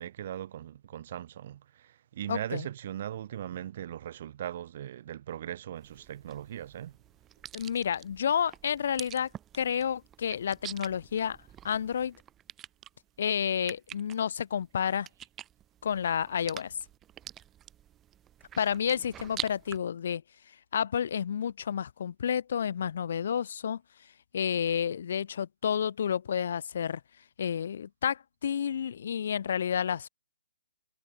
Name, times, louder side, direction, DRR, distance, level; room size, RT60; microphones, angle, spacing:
voice 1, 0.0-6.9, right 11 dB, 50° right, 3.9 m, -39 dB
voice 2, 2.3-2.7 7.5-11.4 11.6-12.2 13.2-15.1 15.8-16.7 18.6-20.2 20.7-23.8 24.3-27.0 27.4-30.1, left 8 dB, 60° left, 1.4 m, -30 dB
Mouth Noises, 5.8-19.8, right 11 dB, 15° right, 6.5 m, -46 dB
hypercardioid pair, 155°, 0 cm